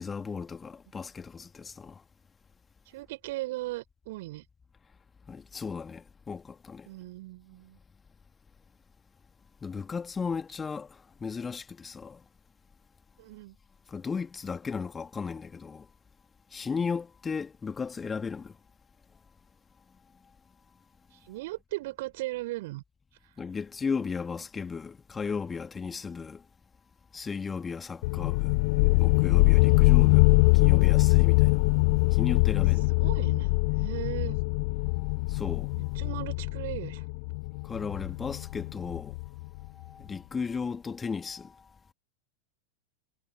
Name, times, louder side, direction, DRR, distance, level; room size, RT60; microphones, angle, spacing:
voice 1, 0.0-2.0 5.3-6.9 9.6-12.2 13.9-15.9 16.5-18.5 23.4-26.4 27.1-28.6 29.0-30.3 30.5-31.6 32.1-32.9 35.3-35.7 37.6-39.1 39.8-41.6, left 5 dB, 15° left, 2.5 m, -35 dB
voice 2, 2.9-4.4 6.9-7.8 13.2-13.6 21.1-22.8 33.0-33.5 33.8-34.4 35.7-37.0, right 19 dB, 50° right, 7.8 m, -37 dB
sound 1, 28.0-39.4, left 29 dB, 45° left, 0.8 m, -23 dB
figure-of-eight pair, 90°, 0 cm